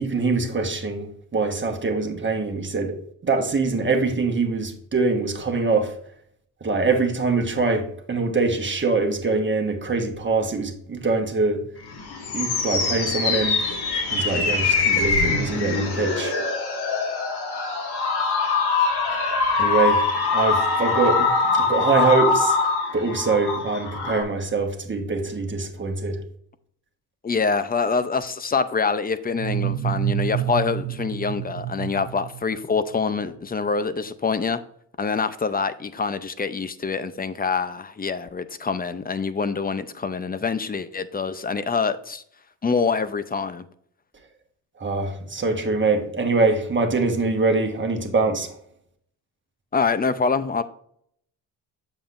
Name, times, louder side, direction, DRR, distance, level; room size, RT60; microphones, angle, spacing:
voice 1, 0.0-5.9 6.6-11.6 12.3-16.4 19.6-20.1 20.3-26.2 44.8-48.5, right 3 dB, 25° right, 1.3 m, -24 dB
sound 1, 11.8-24.2, left 4 dB, 65° left, 1.8 m, -23 dB
voice 2, 27.2-34.6 35.0-42.2 42.6-43.7 49.7-50.6, left 5 dB, 20° left, 0.5 m, -25 dB
sound 2, 29.3-33.0, right 14 dB, 45° right, 0.7 m, -29 dB
7.6 x 7.1 x 2.5 m
cardioid pair, 90°, 43 cm